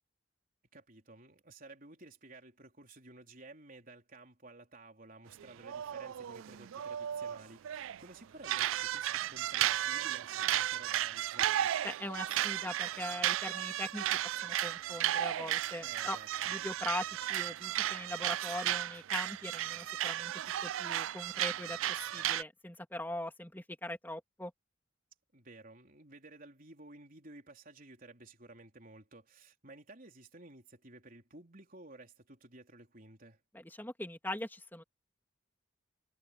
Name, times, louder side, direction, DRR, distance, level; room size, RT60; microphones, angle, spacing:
voice 1, 0.7-11.7 15.8-16.5 25.3-33.4, right 2 dB, 45° right, 4.1 m, -54 dB
sound 1, 5.4-8.0 8.4-22.4, right 12 dB, 75° right, 0.3 m, -34 dB
voice 2, 11.8-16.2 16.4-24.5 33.5-34.8, left 1 dB, 10° left, 3.1 m, -41 dB
head